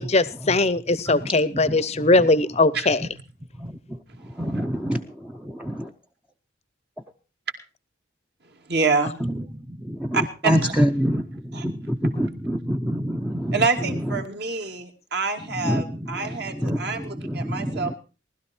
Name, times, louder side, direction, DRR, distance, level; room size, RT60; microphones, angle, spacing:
voice 1, 0.0-3.0, left 2 dB, 30° left, 18 dB, 0.8 m, -20 dB
voice 2, 1.1-2.3 3.0-3.1 3.6-5.9 9.2-14.2 15.4-17.9, equal, 5° right, 4 dB, 0.7 m, -27 dB
voice 3, 8.7-9.1 10.1-10.6 11.5-11.6 13.5-17.9, right 4 dB, 50° right, 5 dB, 2.4 m, -26 dB
19.5 x 12.5 x 4.4 m, 0.34 s
head